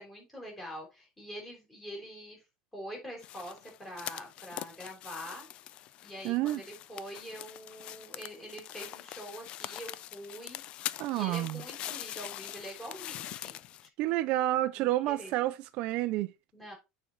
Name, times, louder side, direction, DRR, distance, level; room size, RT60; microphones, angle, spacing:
voice 1, 0.0-2.4 2.7-5.5 6.0-10.6 11.1-13.6 14.0-14.2 14.7-15.3 16.5-16.7, equal, 10° left, 5.0 m, -44 dB
sound 1, 3.2-13.9, left 13 dB, 45° left, 0.5 m, -43 dB
voice 2, 6.2-6.6 11.0-11.6 14.0-16.3, right 15 dB, 55° right, 0.5 m, -29 dB
9.0 x 4.5 x 4.6 m
supercardioid pair, 145°, 2 cm